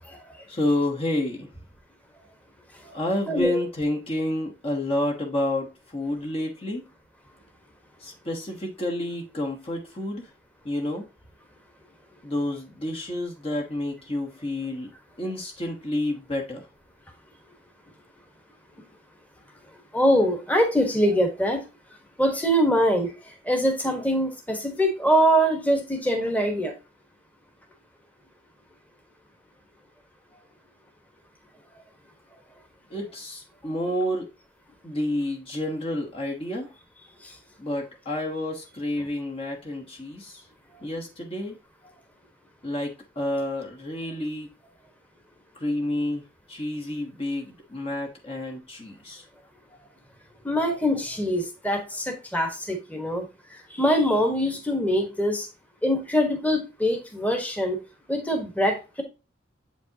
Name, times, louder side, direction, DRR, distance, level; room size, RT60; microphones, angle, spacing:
voice 1, 0.5-1.5 2.9-6.9 8.0-10.3 10.6-11.1 12.2-14.9 15.2-16.7 32.9-34.3 34.8-36.7 37.6-40.4 40.8-41.6 42.6-44.5 45.5-46.2 46.5-49.2, left 1 dB, 30° left, 1.1 m, -29 dB
voice 2, 19.9-21.6 22.2-23.1 23.5-26.7 50.4-53.2 53.8-55.5 55.8-57.8 58.1-59.0, equal, 10° left, 1.2 m, -23 dB
7.7 x 5.2 x 2.8 m
head